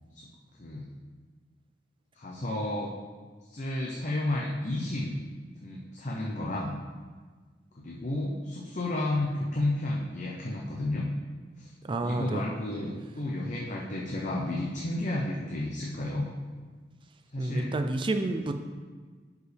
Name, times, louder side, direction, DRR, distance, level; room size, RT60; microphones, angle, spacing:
voice 1, 2.1-2.9 3.5-5.2 5.6-6.7 7.8-11.1 11.6-11.7 12.0-16.3 17.3-17.7, left 1 dB, 45° left, -2 dB, 0.8 m, -32 dB
voice 2, 11.9-12.4 17.4-18.6, right 2 dB, 30° right, 7 dB, 0.4 m, -30 dB
11.0 x 4.8 x 3.4 m, 1.5 s
head